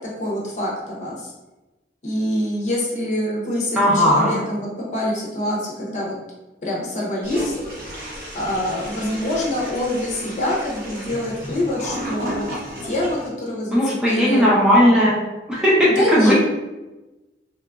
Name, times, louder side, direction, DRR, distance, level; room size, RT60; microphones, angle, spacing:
voice 1, 0.2-1.3 2.0-6.2 6.6-7.6 8.3-12.5 12.8-14.5 15.8-16.3, left 1 dB, 40° left, -4 dB, 0.6 m, -25 dB
voice 2, 3.8-4.3 13.7-15.2 15.5-16.3, equal, 5° right, -7 dB, 0.5 m, -16 dB
Toilet flush, 7.2-13.3, equal, 50° right, 0.9 m, -32 dB
2.9 x 2.4 x 2.2 m, 1.1 s
head